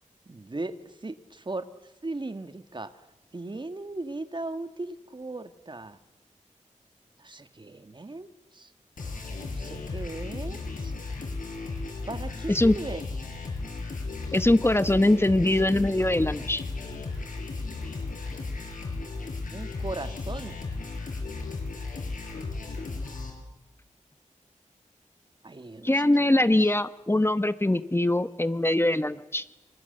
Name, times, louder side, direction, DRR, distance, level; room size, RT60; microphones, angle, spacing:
voice 1, 0.2-1.6 2.0-3.0 3.3-6.0 7.2-8.7 9.4-10.9 12.1-13.1 19.5-20.6 25.4-26.7, right 2 dB, 35° right, 10 dB, 1.8 m, -38 dB
sound 1, 9.0-23.3, left 3 dB, 80° left, 7.4 m, -35 dB
voice 2, 14.3-16.7 25.8-29.4, left 1 dB, 20° left, 12 dB, 1.1 m, -22 dB
26.5 x 25.5 x 8.0 m, 0.95 s
wide cardioid pair, 85°, 13 cm